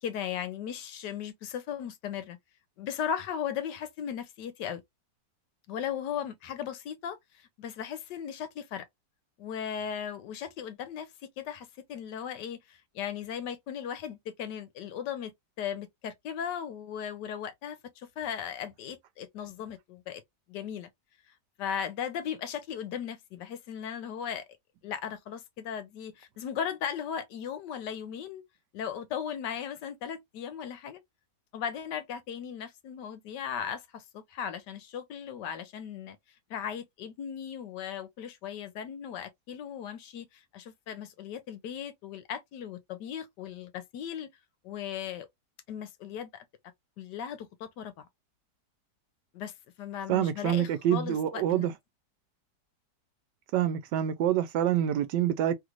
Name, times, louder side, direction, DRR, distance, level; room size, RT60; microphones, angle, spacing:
voice 1, 0.0-2.4 2.8-4.8 5.7-8.9 9.4-11.1 11.4-15.3 15.6-20.2 20.5-20.9 21.6-24.4 24.8-28.4 28.7-31.0 31.5-36.2 36.5-44.3 44.6-45.3 45.7-46.4 47.0-48.0 49.3-51.7, left 8 dB, 85° left, 1.3 m, -37 dB
voice 2, 50.1-51.7 53.5-55.5, right 11 dB, 90° right, 1.2 m, -26 dB
3.2 x 2.5 x 3.0 m
omnidirectional pair, 1.8 m